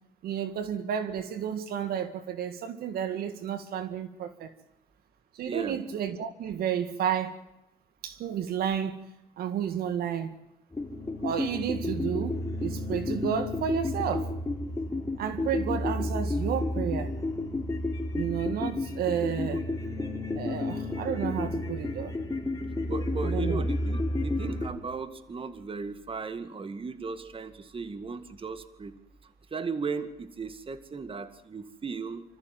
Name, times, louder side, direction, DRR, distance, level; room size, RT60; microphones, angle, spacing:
voice 1, 0.2-4.5 5.3-7.3 8.0-10.4 11.2-14.3 15.2-17.1 18.1-19.7 20.3-22.1 23.2-23.6, right 9 dB, 70° right, 1.9 m, -31 dB
voice 2, 5.4-5.8 22.9-28.9 29.2-32.2, right 4 dB, 35° right, 2.1 m, -36 dB
sound 1, 10.7-24.7, left 2 dB, 20° left, 4.0 m, -31 dB
26.0 x 14.0 x 9.1 m
supercardioid pair, 75°, 16 cm